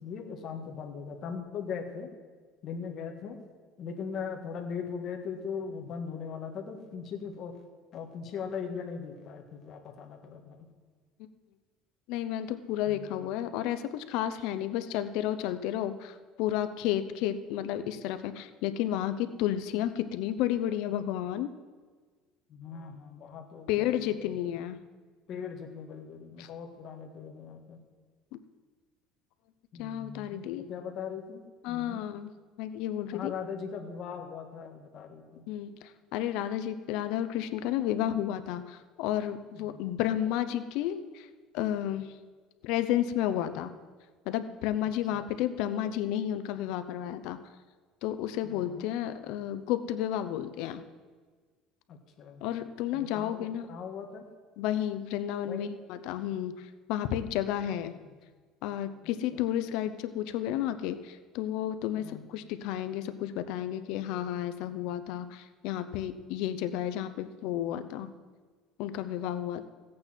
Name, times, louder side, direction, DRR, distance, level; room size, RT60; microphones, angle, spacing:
voice 1, 0.0-2.1 2.6-3.4 3.8-7.5 7.9-10.6 12.9-13.3 22.5-24.4 25.3-27.8 29.7-32.0 33.1-35.4 39.5-39.8 45.1-45.3 48.4-48.9 51.9-52.4 52.9-54.2 55.5-55.7 58.0-58.1 59.3-59.4 62.0-62.2, left 6 dB, 45° left, 3 dB, 1.7 m, -40 dB
voice 2, 12.1-21.5 23.7-24.8 26.4-26.5 28.3-28.4 29.8-30.6 31.6-32.3 32.6-33.3 35.5-41.3 41.5-42.1 42.6-43.7 44.3-47.4 48.0-50.8 52.4-53.7 54.6-57.9 58.6-68.1 68.8-69.7, left 11 dB, 70° left, 11 dB, 0.7 m, -32 dB
16.0 x 8.5 x 4.4 m, 1.5 s
cardioid pair, 135°, 0 cm